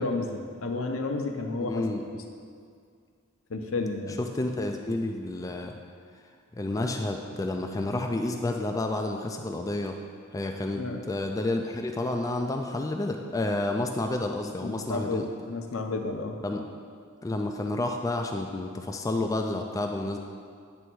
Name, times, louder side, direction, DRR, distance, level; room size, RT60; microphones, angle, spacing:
voice 1, 0.0-1.8 3.5-4.2 10.7-11.0 14.6-15.2 15.5-16.4, left 3 dB, 70° left, 4 dB, 0.7 m, -31 dB
voice 2, 1.6-2.0 4.2-5.8 6.6-10.0 10.3-15.3 16.4-16.7 17.2-20.2, left 2 dB, 15° left, 3 dB, 0.3 m, -30 dB
9.5 x 3.4 x 6.1 m, 2.2 s
head